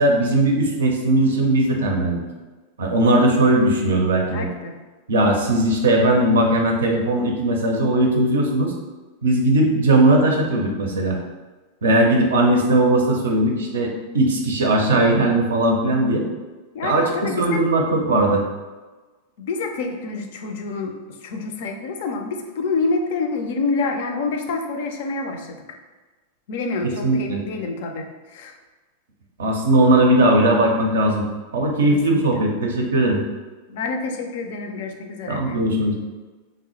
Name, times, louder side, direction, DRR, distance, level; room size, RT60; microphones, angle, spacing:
voice 1, 0.0-2.2 2.8-4.5 5.1-8.7 9.2-11.2 11.8-16.2 16.8-18.4 27.0-27.4 29.4-31.3 31.5-33.2 35.3-35.9, right 1 dB, 65° right, 1 dB, 0.5 m, -18 dB
voice 2, 4.3-4.8 16.7-17.6 19.4-25.8 26.5-28.6 31.9-32.4 33.7-35.6, left 3 dB, 55° left, 4 dB, 0.3 m, -27 dB
3.2 x 2.0 x 3.0 m, 1.3 s
figure-of-eight pair, 90°, 0 cm